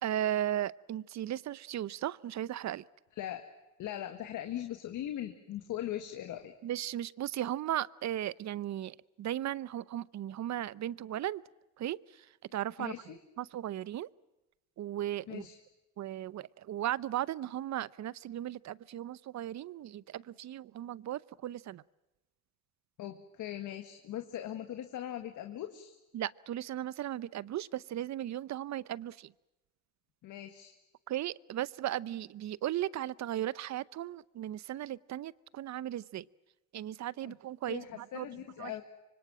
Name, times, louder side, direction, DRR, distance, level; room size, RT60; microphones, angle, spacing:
voice 1, 0.0-2.8 6.6-11.4 11.8-12.0 12.5-12.9 13.4-14.1 14.8-15.5 16.0-21.8 26.1-29.3 31.1-36.2 36.7-38.3 38.6-38.7, right 12 dB, 65° right, 20 dB, 0.8 m, -36 dB
voice 2, 3.1-3.4 3.8-6.5 12.8-13.2 15.3-15.6 23.0-26.0 30.2-30.7 37.2-37.3 37.7-38.8, left 12 dB, 85° left, 7 dB, 1.9 m, -40 dB
26.0 x 24.5 x 7.6 m, 1.0 s
cardioid pair, 90°, 30 cm